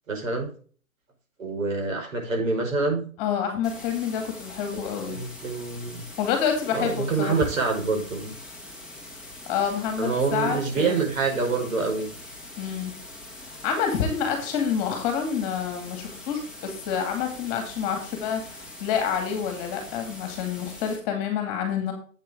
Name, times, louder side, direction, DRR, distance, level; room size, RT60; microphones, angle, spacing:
voice 1, 0.1-0.5 1.4-3.0 4.7-6.0 6.7-8.3 10.0-12.1, right 4 dB, 65° right, 2 dB, 5.0 m, -26 dB
voice 2, 3.2-5.2 6.2-7.4 9.5-11.0 12.6-12.9 13.6-21.9, left 7 dB, 25° left, 5 dB, 2.3 m, -28 dB
sound 1, 3.6-21.0, left 1 dB, ahead, 1.3 m, -43 dB
9.2 x 8.1 x 3.6 m, 0.42 s
hypercardioid pair, 145°, 42 cm